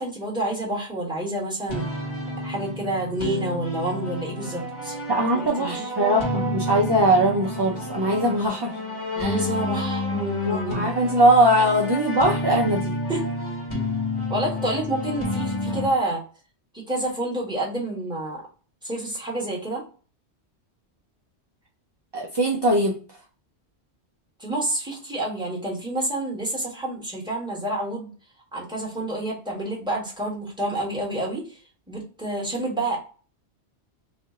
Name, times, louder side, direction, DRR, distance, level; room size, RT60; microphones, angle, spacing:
voice 1, 0.0-1.9 2.4-5.0 5.3-5.9 9.1-10.9 13.1-13.3 14.2-16.2 16.7-18.4 18.8-19.8 24.4-28.1 28.5-31.6 31.9-33.0, right 1 dB, 5° right, -4 dB, 1.4 m, -28 dB
sound 1, 1.7-15.9, left 1 dB, 25° left, 1.3 m, -30 dB
voice 2, 5.1-8.8 9.2-9.4 10.5-13.0 22.1-23.0, right 1 dB, 35° right, -2 dB, 0.4 m, -21 dB
3.2 x 2.6 x 3.6 m, 0.37 s
omnidirectional pair, 1.2 m